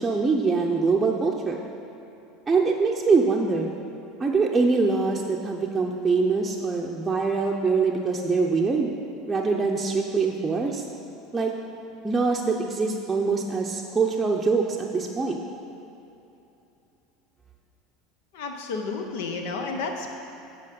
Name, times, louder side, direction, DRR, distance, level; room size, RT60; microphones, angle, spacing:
voice 1, 0.0-1.6 2.5-3.7 4.2-8.9 9.3-10.8 11.3-11.5 12.0-15.4, right 4 dB, 15° right, -1 dB, 0.7 m, -24 dB
voice 2, 18.3-20.1, left 4 dB, 75° left, 4 dB, 0.9 m, -31 dB
8.2 x 4.8 x 5.3 m, 2.9 s
supercardioid pair, 95°, 0 cm